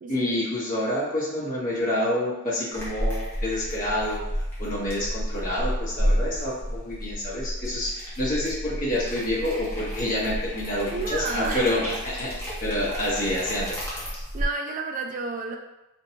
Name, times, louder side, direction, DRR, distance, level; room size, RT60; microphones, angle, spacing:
voice 1, 0.1-4.2 4.6-12.3 12.6-13.8, left 1 dB, 40° left, -7 dB, 0.9 m, -28 dB
sound 1, 2.7-14.5, equal, 10° left, 0.7 m, -31 dB
voice 2, 10.9-11.7 14.3-15.6, right 4 dB, 40° right, 3 dB, 0.3 m, -31 dB
2.6 x 2.2 x 2.7 m, 0.94 s
head